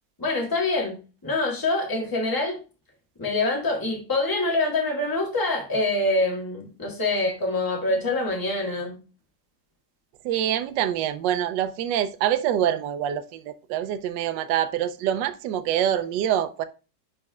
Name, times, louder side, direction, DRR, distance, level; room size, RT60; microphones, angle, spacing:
voice 1, 0.2-1.0 1.2-2.6 3.2-9.0, left 2 dB, 10° left, 1.5 m, -25 dB
voice 2, 10.2-13.4 13.7-16.6, right 10 dB, 75° right, 1.2 m, -25 dB
10.0 x 4.3 x 2.3 m
omnidirectional pair, 2.1 m